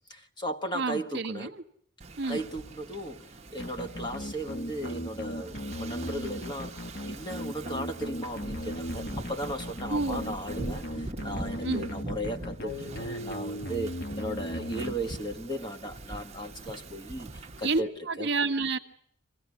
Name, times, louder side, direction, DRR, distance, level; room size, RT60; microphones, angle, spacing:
voice 1, 0.0-1.5 2.3-3.3 3.5-17.9 18.2-18.3, right 1 dB, 20° left, 1.4 m, -36 dB
voice 2, 0.7-1.5 2.2-2.4 9.9-10.3 11.6-11.9 17.6-18.8, right 3 dB, 55° right, 1.5 m, -29 dB
Wind / Ocean, 2.0-17.8, right 2 dB, 30° right, 1.1 m, -43 dB
sound 1, 3.6-15.5, equal, 50° left, 1.4 m, -37 dB
26.0 x 16.0 x 9.6 m
head